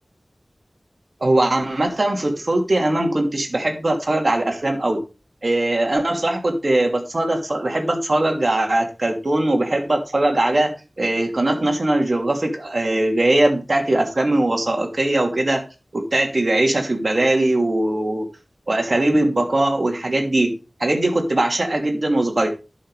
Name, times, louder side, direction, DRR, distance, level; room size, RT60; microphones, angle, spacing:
voice 1, 1.2-5.0 5.4-10.7 11.0-15.6 15.9-18.3 18.7-22.5, right 1 dB, 55° right, 3 dB, 2.8 m, -20 dB
11.5 x 6.4 x 4.9 m, 0.31 s
wide cardioid pair, 65°, 0 cm